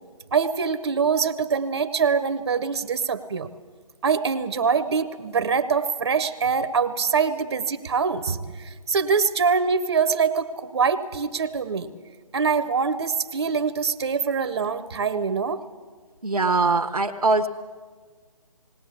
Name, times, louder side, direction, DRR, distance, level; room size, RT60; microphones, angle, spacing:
voice 1, 0.3-3.5 4.0-11.9 12.3-15.6, right 5 dB, 45° right, 11 dB, 0.9 m, -24 dB
voice 2, 16.2-17.5, right 3 dB, 75° right, 2 dB, 1.1 m, -21 dB
20.0 x 18.0 x 8.4 m, 1.5 s
figure-of-eight pair, 150°, 19 cm